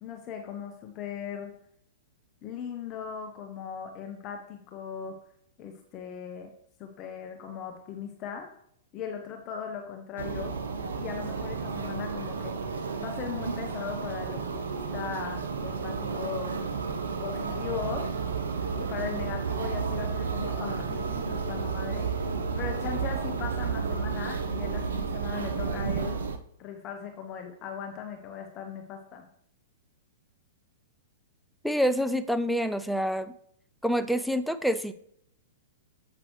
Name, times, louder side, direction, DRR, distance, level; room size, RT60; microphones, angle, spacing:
voice 1, 0.0-1.5 2.4-5.2 5.6-6.5 6.8-8.5 8.9-10.5 11.0-12.5 13.0-16.5 17.2-18.1 18.7-26.2 26.6-29.2, left 7 dB, 35° left, 4 dB, 1.0 m, -38 dB
sound 1, 10.2-26.4, right 5 dB, 75° right, 0.7 m, -32 dB
voice 2, 31.6-33.3 33.8-34.9, equal, ahead, 11 dB, 0.4 m, -27 dB
7.7 x 5.9 x 3.1 m, 0.70 s
hypercardioid pair, 110°, 0 cm